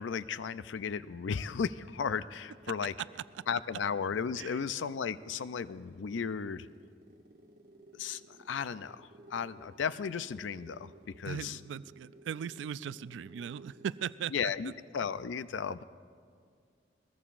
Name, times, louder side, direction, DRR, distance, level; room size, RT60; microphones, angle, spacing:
voice 1, 0.0-2.9 3.5-6.7 7.9-11.6 14.3-15.8, left 6 dB, 90° left, 15 dB, 0.4 m, -35 dB
sound 1, 2.6-14.3, right 2 dB, 55° right, 0.9 m, -58 dB
voice 2, 11.3-14.5, right 8 dB, 75° right, 17 dB, 0.3 m, -39 dB
21.0 x 20.0 x 2.5 m, 2.2 s
head